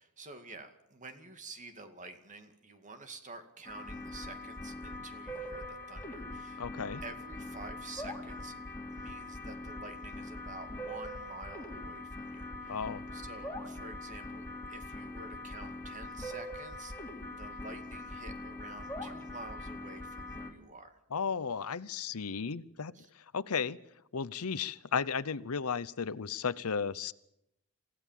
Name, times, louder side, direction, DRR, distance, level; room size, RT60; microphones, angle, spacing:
voice 1, 0.0-6.6 7.0-8.6 8.9-12.8 13.1-17.0 17.4-21.0 22.9-23.1, right 3 dB, 35° right, 7 dB, 2.2 m, -49 dB
sound 1, 3.6-20.5, left 1 dB, 10° left, 3.5 m, -42 dB
voice 2, 6.6-7.0 12.7-13.0 21.1-23.8 24.1-27.1, left 6 dB, 70° left, 17 dB, 0.7 m, -34 dB
27.5 x 16.0 x 7.5 m, 0.81 s
head